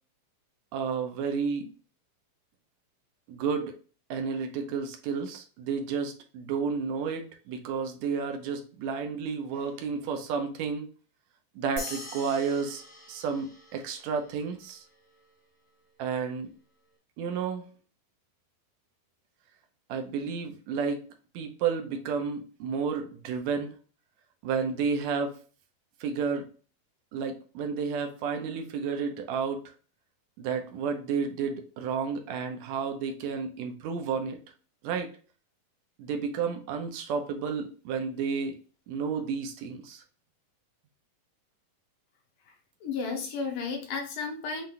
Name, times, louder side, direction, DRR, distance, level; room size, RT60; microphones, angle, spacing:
voice 1, 0.7-1.7 3.3-3.7 4.1-10.9 11.5-12.8 13.1-14.8 16.0-16.5 17.2-17.6 19.9-21.0 21.3-23.7 24.4-25.3 26.0-26.5 27.1-29.6 30.4-34.4 34.8-35.1 36.0-38.5 38.9-40.0, right 6 dB, 75° right, 5 dB, 1.7 m, -31 dB
sound 1, 11.8-14.5, left 1 dB, 40° left, 0.6 m, -43 dB
voice 2, 42.8-44.7, left 5 dB, 75° left, 1 dB, 2.6 m, -33 dB
7.5 x 2.6 x 2.2 m, 0.39 s
omnidirectional pair, 3.8 m